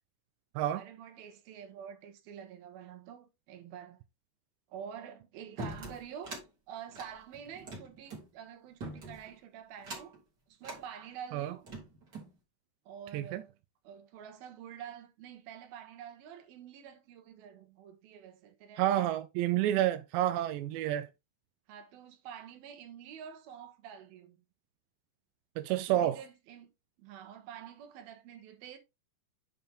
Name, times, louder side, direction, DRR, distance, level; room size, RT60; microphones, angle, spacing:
voice 1, 0.7-4.0 4.7-6.4 6.7-10.2 10.5-11.6 12.9-13.5 13.8-19.1 21.7-24.4 25.7-26.7 27.0-28.8, right 8 dB, 65° right, 3.1 m, -48 dB
sound 1, 5.6-6.5 6.9-8.3 8.8-9.3 9.8-10.2 10.6-10.8 11.4-12.3, right 2 dB, 25° right, 3.0 m, -43 dB
voice 2, 18.8-21.1 25.6-26.2, right 12 dB, 85° right, 2.8 m, -29 dB
9.2 x 5.3 x 3.4 m
omnidirectional pair, 4.9 m